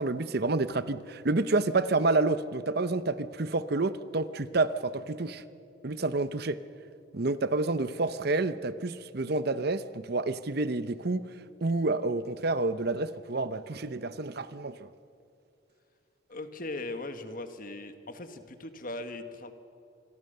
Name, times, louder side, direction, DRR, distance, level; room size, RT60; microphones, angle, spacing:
voice 1, 0.0-5.4 5.8-6.6 7.1-11.3 11.6-14.9, right 3 dB, 50° right, 13 dB, 0.7 m, -29 dB
voice 2, 16.3-19.5, left 2 dB, 45° left, 8 dB, 1.5 m, -39 dB
26.0 x 22.0 x 6.7 m, 2.5 s
head